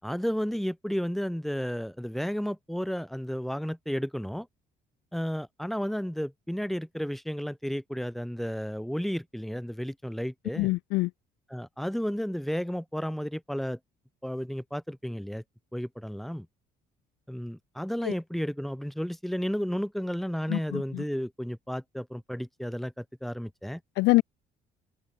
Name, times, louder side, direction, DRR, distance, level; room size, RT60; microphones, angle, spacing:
voice 1, 0.0-4.5 5.1-10.7 11.5-13.8 14.2-15.4 15.7-16.5 17.3-23.8, equal, ahead, 3.8 m, -32 dB
voice 2, 10.6-11.1 18.0-18.1 20.5-21.0 24.0-24.2, left 21 dB, 85° left, 0.5 m, -25 dB
cardioid pair, 110°, 17 cm